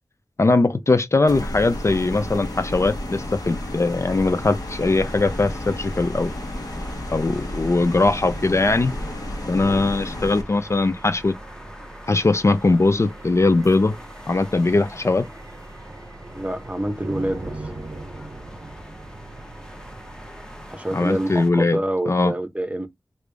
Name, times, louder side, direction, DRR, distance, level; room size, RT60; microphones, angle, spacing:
voice 1, 0.4-6.3 7.1-8.9 9.5-11.3 12.1-14.0 14.3-15.3 20.9-21.8 22.1-22.3, left 3 dB, 45° left, 0.4 m, -20 dB
sound 1, 1.3-10.4, left 1 dB, 65° left, 1.1 m, -32 dB
sound 2, 1.7-21.5, left 1 dB, 10° left, 0.8 m, -44 dB
sound 3, 4.7-20.7, right 2 dB, 55° right, 0.7 m, -41 dB
voice 2, 16.3-17.7 20.7-22.9, right 1 dB, 20° right, 0.8 m, -27 dB
3.4 x 2.5 x 3.3 m
wide cardioid pair, 65°, 7 cm